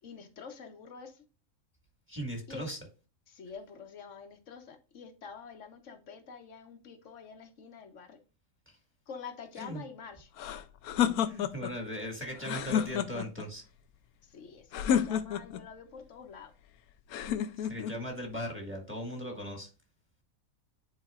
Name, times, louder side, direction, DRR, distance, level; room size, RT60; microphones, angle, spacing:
voice 1, 0.0-1.2 2.5-2.7 3.3-8.2 9.1-10.3 14.2-16.5, left 6 dB, 60° left, 1.2 m, -47 dB
voice 2, 2.1-2.8 8.7-8.8 9.6-9.8 11.2-13.6 17.6-19.7, equal, 10° right, 1.7 m, -38 dB
sound 1, 10.4-11.8 12.4-13.5 14.7-15.7 17.1-18.0, left 9 dB, 85° left, 1.1 m, -30 dB
9.8 x 4.5 x 2.4 m
omnidirectional pair, 1.5 m